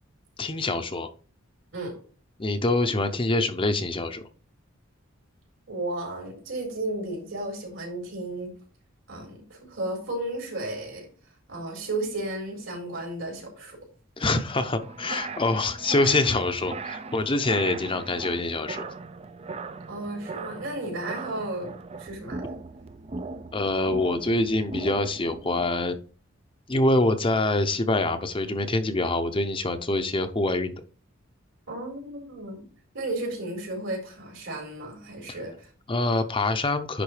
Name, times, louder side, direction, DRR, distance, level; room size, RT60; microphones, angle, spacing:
voice 1, 0.4-1.1 2.4-4.3 14.2-18.9 23.5-26.0 26.7-30.7 35.3-35.4 35.9-37.0, left 2 dB, 25° left, 7 dB, 0.7 m, -25 dB
voice 2, 5.7-8.5 9.1-11.1 11.5-13.8 19.9-22.4 31.7-32.6 32.9-35.7, right 2 dB, 70° right, 1 dB, 4.4 m, -33 dB
sound 1, 14.8-25.7, right 3 dB, 30° right, 0.5 m, -39 dB
10.5 x 3.8 x 4.9 m, 0.40 s
head